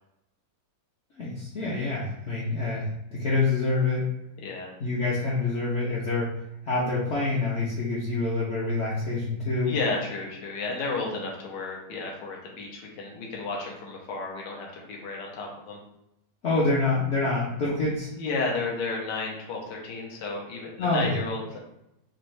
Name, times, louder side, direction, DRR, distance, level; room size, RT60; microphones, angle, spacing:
voice 1, 1.2-4.1 4.8-6.3 6.6-9.7 16.4-18.1 20.8-21.2, left 3 dB, 55° left, -6 dB, 0.8 m, -26 dB
voice 2, 4.4-4.7 9.7-15.8 18.2-21.6, left 3 dB, 80° left, -1 dB, 1.4 m, -32 dB
4.0 x 2.6 x 3.1 m, 0.83 s
omnidirectional pair, 1.9 m